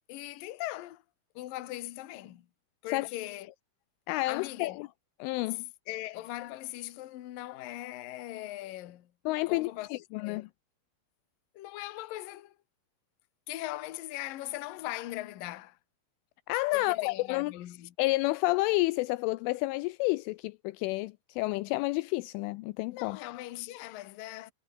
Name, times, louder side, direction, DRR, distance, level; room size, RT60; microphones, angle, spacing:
voice 1, 0.1-1.0 1.3-2.5 2.8-3.6 4.3-4.8 5.5-9.1 9.5-10.5 11.5-12.6 13.5-15.8 16.7-17.9 22.9-24.5, left 16 dB, 60° left, 2.4 m, -40 dB
voice 2, 4.1-4.9 5.2-5.6 9.3-10.5 16.5-17.5 18.0-23.2, left 21 dB, 85° left, 3.0 m, -30 dB
omnidirectional pair, 5.8 m